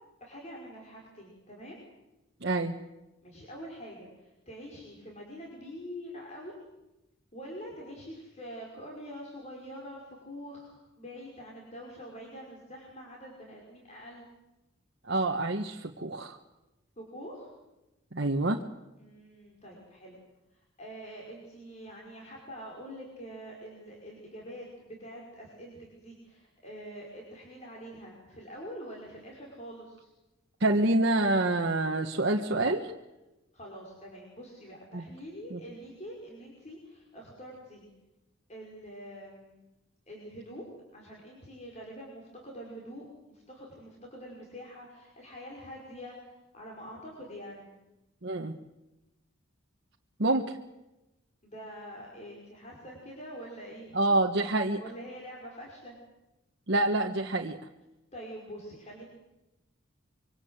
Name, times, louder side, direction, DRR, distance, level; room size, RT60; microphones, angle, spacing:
voice 1, 0.2-1.8 3.2-4.1 4.5-6.5 7.3-14.2 17.0-17.5 19.0-20.2 20.5-30.1 33.5-37.9 38.5-39.6 40.1-40.7 40.9-47.7 51.4-53.9 54.8-56.0 58.1-59.0, equal, 35° left, -2 dB, 5.6 m, -45 dB
voice 2, 2.4-2.8 15.1-16.4 18.1-18.6 30.6-32.9 34.9-35.0 35.5-35.6 48.2-48.5 50.2-50.6 53.9-54.8 56.7-57.6, right 2 dB, 55° right, 1 dB, 1.3 m, -27 dB
25.5 x 24.5 x 8.0 m, 1.0 s
head